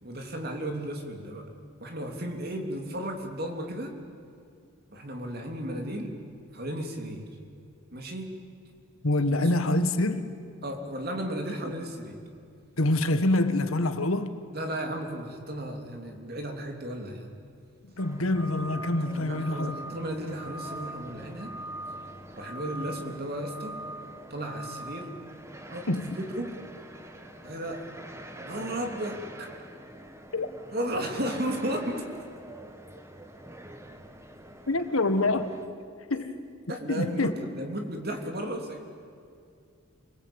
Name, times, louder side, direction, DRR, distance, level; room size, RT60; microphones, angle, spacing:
voice 1, 0.0-1.5 1.8-4.0 4.9-6.2 6.5-7.2 7.9-8.3 9.3-9.5 10.6-12.2 14.5-17.3 19.1-21.5 22.3-23.8 24.3-25.1 25.7-26.6 27.4-27.9 28.4-29.5 30.7-32.1 36.1-36.2 36.7-39.0, right 1 dB, 45° right, 3 dB, 3.2 m, -34 dB
voice 2, 9.0-10.3 12.8-14.4 18.0-19.8 25.9-26.0 30.3-30.5 34.7-35.5 36.1-36.3 36.9-37.3, left 2 dB, 80° left, 9 dB, 1.6 m, -25 dB
sound 1, 18.0-35.7, right 1 dB, 15° right, 1.4 m, -43 dB
28.5 x 20.5 x 8.9 m, 2.4 s
head